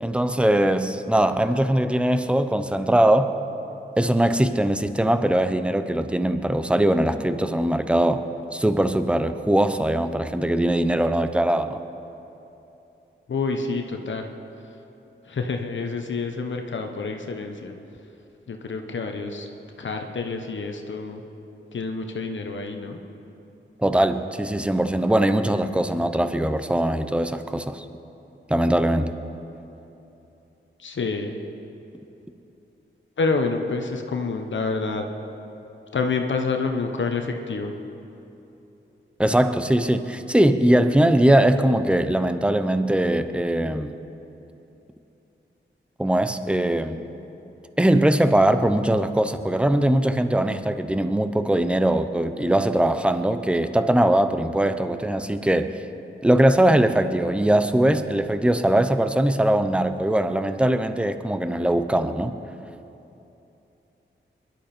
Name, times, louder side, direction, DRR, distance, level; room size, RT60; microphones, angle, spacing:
voice 1, 0.0-3.4 4.0-8.2 8.5-11.8 23.8-27.8 28.5-29.2 39.2-44.0 46.0-47.0 47.8-55.7 56.2-62.3, right 1 dB, 5° right, 10 dB, 0.8 m, -21 dB
voice 2, 13.3-14.3 15.2-17.7 18.5-19.5 19.8-21.2 21.7-23.0 30.8-31.4 33.2-35.0 35.9-37.7, left 4 dB, 70° left, 4 dB, 1.2 m, -28 dB
22.5 x 12.0 x 4.5 m, 2.9 s
wide cardioid pair, 80°, 20 cm